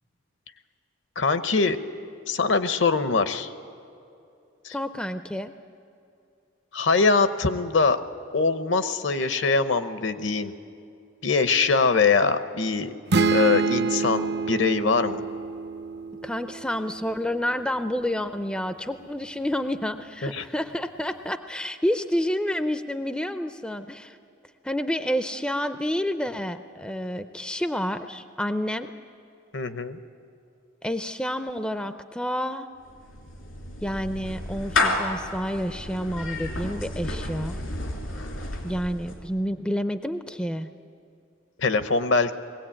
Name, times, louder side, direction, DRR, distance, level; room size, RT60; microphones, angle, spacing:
voice 1, 1.2-1.8 2.3-3.5 4.6-4.7 6.7-8.0 8.3-10.5 11.2-12.9 13.3-15.2 20.2-20.4 29.5-30.0 41.6-42.3, left 4 dB, 65° left, 11 dB, 0.9 m, -23 dB
voice 2, 4.7-5.5 16.2-24.2 24.6-28.9 30.8-32.7 33.8-37.6 38.6-40.7, equal, 5° left, 9 dB, 0.5 m, -29 dB
sound 1, 13.1-16.8, right 4 dB, 50° right, 0.6 m, -26 dB
Clapping / Meow, 32.9-39.3, left 2 dB, 80° left, 2.8 m, -31 dB
21.5 x 17.0 x 8.8 m, 2.6 s
head